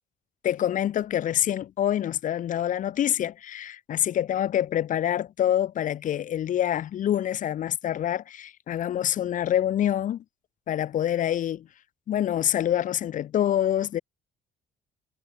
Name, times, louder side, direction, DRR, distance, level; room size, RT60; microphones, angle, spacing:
voice 1, 0.4-10.2 10.7-11.7 12.1-14.0, left 11 dB, 50° left, 0.8 m, -26 dB
cardioid pair, 110°, 17 cm